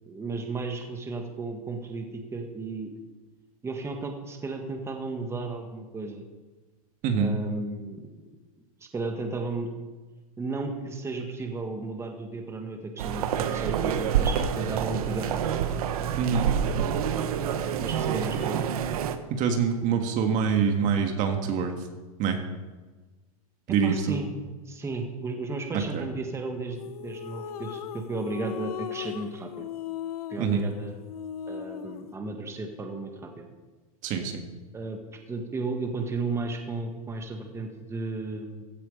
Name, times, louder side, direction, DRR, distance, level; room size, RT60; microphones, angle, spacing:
voice 1, 0.1-2.9 3.6-6.2 7.1-8.1 8.8-9.7 10.4-15.3 17.8-18.6 23.7-24.3 24.7-29.7 30.3-31.0 31.5-33.5 34.7-35.0 35.3-38.6, right 3 dB, 15° right, 3 dB, 1.8 m, -34 dB
sound 1, 13.0-19.2, right 8 dB, 75° right, 1.3 m, -27 dB
voice 2, 16.2-16.5 19.3-21.7 22.2-22.4 23.7-24.2 25.9-26.1 30.4-30.6 34.0-34.3, right 6 dB, 40° right, 5 dB, 1.8 m, -25 dB
sound 2, 26.8-32.1, left 9 dB, 80° left, 0.8 m, -38 dB
16.0 x 11.0 x 5.2 m, 1.3 s
supercardioid pair, 130°, 19 cm